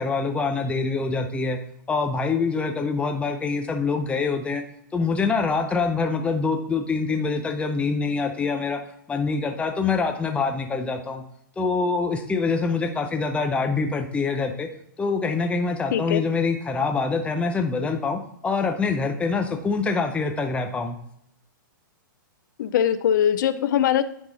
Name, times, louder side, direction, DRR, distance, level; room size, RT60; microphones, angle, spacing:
voice 1, 0.0-1.6 1.9-4.6 4.9-8.8 9.1-11.2 11.6-14.7 15.0-21.0, left 4 dB, 10° left, 5 dB, 0.6 m, -25 dB
voice 2, 15.9-16.2 22.6-24.0, left 10 dB, 60° left, 13 dB, 0.5 m, -21 dB
9.3 x 3.6 x 4.0 m, 0.72 s
hypercardioid pair, 125°, 11 cm